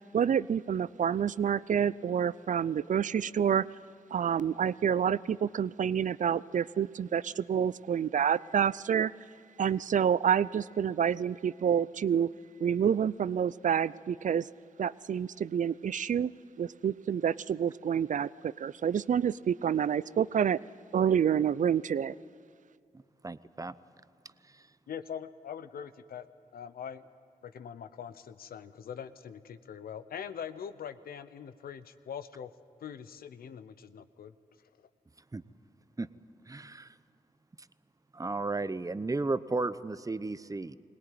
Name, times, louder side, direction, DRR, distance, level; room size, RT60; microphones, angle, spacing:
voice 1, 0.1-3.7 4.1-9.1 9.6-12.3 12.6-14.5 14.8-16.3 16.6-20.6 20.9-22.1, right 8 dB, 55° right, 20 dB, 0.5 m, -28 dB
voice 2, 23.2-23.7 35.3-35.4 36.0-36.1 36.5-36.9 38.1-40.8, right 3 dB, 20° right, 15 dB, 0.8 m, -34 dB
voice 3, 24.9-26.3 26.5-27.1 27.4-32.5 32.8-34.3 34.8-34.9, left 8 dB, 75° left, 11 dB, 0.8 m, -42 dB
20.5 x 18.0 x 9.3 m, 2.2 s
supercardioid pair, 45°, 15 cm